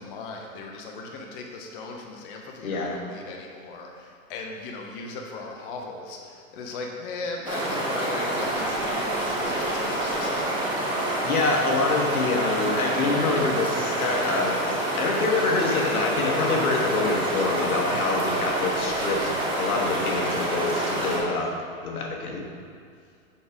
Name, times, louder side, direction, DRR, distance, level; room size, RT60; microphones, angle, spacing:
voice 1, 0.0-10.6, left 3 dB, 40° left, 1 dB, 0.8 m, -38 dB
voice 2, 2.6-3.0 11.2-14.6 15.0-21.5 21.8-22.4, left 3 dB, 85° left, 1 dB, 1.4 m, -26 dB
sound 1, 7.4-21.2, right 1 dB, 10° right, 1.1 m, -27 dB
sound 2, 12.8-15.8, left 2 dB, 15° left, 0.4 m, -44 dB
6.6 x 5.5 x 4.7 m, 2.3 s
hypercardioid pair, 150°, 42 cm